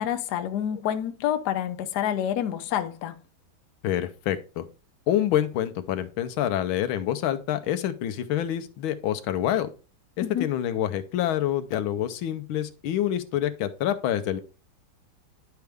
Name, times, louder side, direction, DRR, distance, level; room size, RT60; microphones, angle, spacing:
voice 1, 0.0-3.1 10.2-10.5, left 10 dB, 65° left, 1.2 m, -28 dB
voice 2, 3.8-4.7 5.1-9.7 10.2-14.4, left 11 dB, 90° left, 1.5 m, -27 dB
10.5 x 4.6 x 3.4 m
omnidirectional pair, 2.2 m